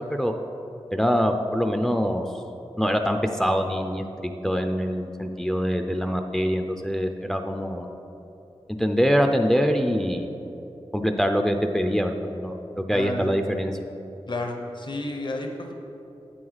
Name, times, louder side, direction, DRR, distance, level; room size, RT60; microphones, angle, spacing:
voice 1, 0.9-2.2 2.8-7.9 8.8-10.3 10.9-13.8, equal, 5° left, 5 dB, 0.5 m, -24 dB
voice 2, 12.9-13.3 14.3-15.7, left 2 dB, 50° left, 3 dB, 0.9 m, -32 dB
7.9 x 7.7 x 4.0 m, 2.9 s
wide cardioid pair, 65°, 10 cm